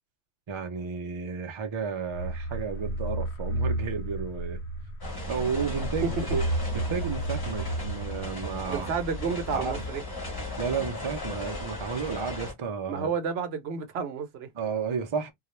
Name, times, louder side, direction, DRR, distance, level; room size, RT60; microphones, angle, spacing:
voice 1, 0.5-4.6 5.3-6.4 6.7-8.9 9.2-9.8 10.6-13.1 14.5-15.3, right 5 dB, 45° right, 0.4 m, -32 dB
sound 1, 2.1-8.6, right 1 dB, 80° left, 0.8 m, -32 dB
sound 2, 5.0-12.5, left 1 dB, 25° left, 0.7 m, -36 dB
voice 2, 8.7-10.0 12.9-14.5, right 6 dB, 70° right, 0.9 m, -30 dB
2.3 x 2.1 x 3.0 m
omnidirectional pair, 1.1 m